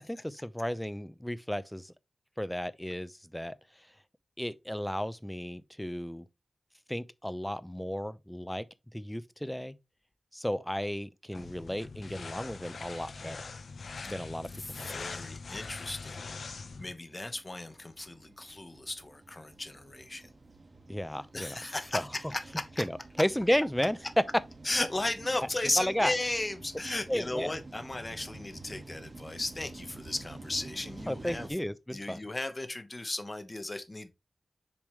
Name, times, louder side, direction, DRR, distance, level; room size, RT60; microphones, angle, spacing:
voice 1, 0.0-1.9 2.4-3.6 4.4-6.3 6.9-8.7 8.9-9.8 10.3-13.4 14.1-15.2 20.9-21.6 21.9-22.1 22.8-24.0 25.8-26.1 27.1-27.5 31.1-32.2, equal, 5° left, 0.6 m, -33 dB
sound 1, 11.3-16.9, left 4 dB, 85° left, 0.6 m, -42 dB
sound 2, 14.5-31.5, right 2 dB, 50° right, 1.8 m, -50 dB
voice 2, 14.6-16.2 16.5-20.3 21.3-22.8 24.6-31.5 31.9-34.1, left 2 dB, 30° left, 1.1 m, -35 dB
7.1 x 4.9 x 3.2 m
wide cardioid pair, 75°, 0 cm